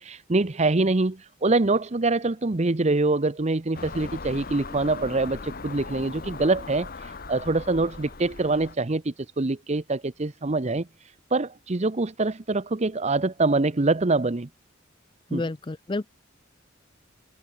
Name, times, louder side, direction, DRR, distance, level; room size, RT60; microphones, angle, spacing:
voice 1, 0.0-6.9 7.3-10.9 11.3-14.5 15.3-15.5, right 3 dB, 35° right, 0.8 m, -24 dB
Car passing by / Engine, 3.7-8.7, left 3 dB, 45° left, 1.3 m, -39 dB
voice 2, 15.3-16.1, left 2 dB, 25° left, 0.5 m, -30 dB
head